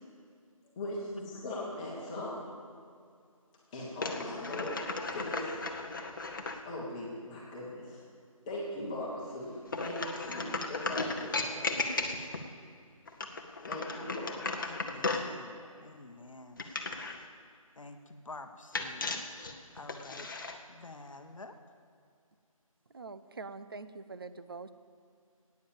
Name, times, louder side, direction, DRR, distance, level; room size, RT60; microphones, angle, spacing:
voice 1, 0.7-2.4 3.7-5.9 6.2-6.3 6.6-8.0 8.5-11.8 13.7-14.4, left 1 dB, 10° left, -5 dB, 1.6 m, -40 dB
sound 1, 4.0-6.6 9.7-12.5 13.1-15.3 16.6-17.2 18.7-20.6, left 3 dB, 35° left, 0.9 m, -36 dB
voice 2, 14.5-16.6 17.8-19.2 19.7-21.6, left 3 dB, 65° left, 7 dB, 0.9 m, -49 dB
voice 3, 22.9-24.7, right 4 dB, 40° right, 12 dB, 0.5 m, -44 dB
10.0 x 9.3 x 7.3 m, 2.3 s
figure-of-eight pair, 160°, 18 cm